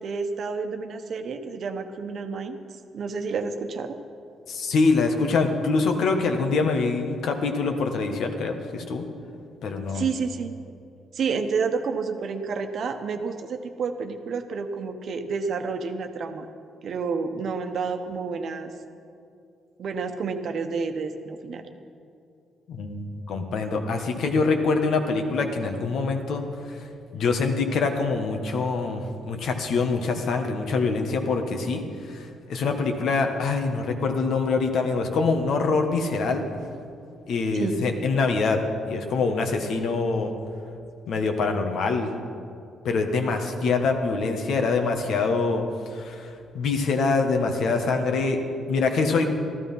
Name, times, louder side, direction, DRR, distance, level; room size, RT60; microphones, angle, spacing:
voice 1, 0.0-2.6 2.9-4.0 9.9-10.5 11.1-16.5 16.8-18.7 19.8-21.7 37.5-37.8, right 5 dB, 60° right, 7 dB, 1.1 m, -30 dB
voice 2, 4.5-9.0 9.6-10.1 22.7-26.8 27.1-31.8 32.1-36.4 37.3-40.3 41.1-42.1 42.8-45.6 45.9-48.4 48.7-49.4, left 4 dB, 70° left, 5 dB, 1.5 m, -24 dB
14.0 x 12.5 x 5.6 m, 2.5 s
cardioid pair, 90°, 0 cm